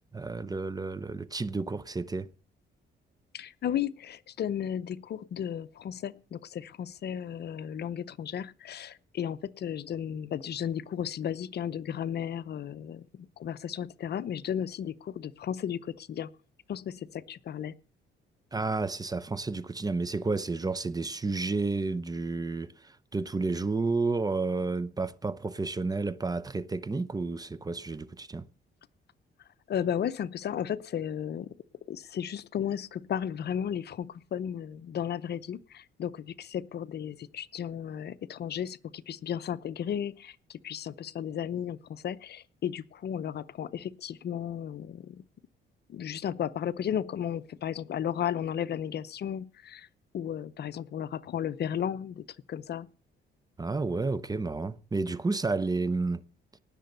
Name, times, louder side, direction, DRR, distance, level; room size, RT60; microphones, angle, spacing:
voice 1, 0.0-2.3 18.5-28.5 53.6-56.3, right 3 dB, 20° right, 0.7 m, -31 dB
voice 2, 3.3-16.3 16.7-17.8 29.7-31.5 31.9-45.2 45.9-49.9 50.1-52.9, left 9 dB, 55° left, 0.7 m, -34 dB
18.5 x 6.8 x 6.7 m
cardioid pair, 90°, 20 cm